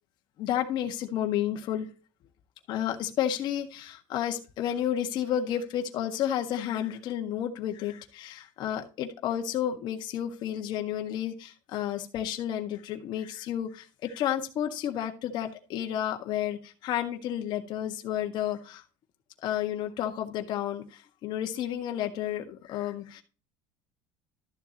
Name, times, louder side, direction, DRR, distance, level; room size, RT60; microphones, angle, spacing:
voice 1, 0.4-1.9 2.7-18.8 19.4-23.2, left 10 dB, 45° left, 1.6 m, -31 dB
13.5 x 7.1 x 3.0 m
cardioid pair, 160°, 11 cm